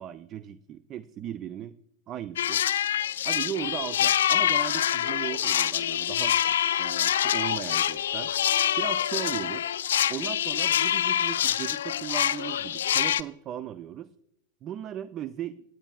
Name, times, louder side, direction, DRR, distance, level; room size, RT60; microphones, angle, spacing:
voice 1, 0.0-1.7 2.1-2.6 3.2-8.3 8.8-9.7 10.1-14.1 14.6-15.6, right 10 dB, 35° right, 16 dB, 0.4 m, -37 dB
sound 1, 2.4-13.2, left 10 dB, 65° left, 0.4 m, -26 dB
18.5 x 9.0 x 2.3 m, 0.80 s
figure-of-eight pair, 90°, 0 cm